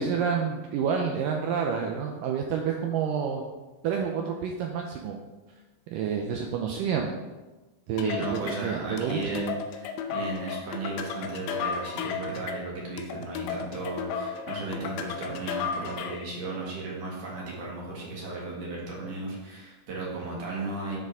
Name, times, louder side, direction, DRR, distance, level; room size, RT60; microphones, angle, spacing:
voice 1, 0.0-3.4 3.8-5.2 5.9-7.1 7.9-9.4, right 6 dB, 85° right, 2 dB, 1.9 m, -29 dB
sound 1, 8.0-16.3, left 6 dB, 80° left, 2.5 m, -34 dB
voice 2, 8.0-21.0, right 3 dB, 60° right, -4 dB, 3.1 m, -35 dB
10.5 x 6.7 x 3.6 m, 1.2 s
omnidirectional pair, 4.6 m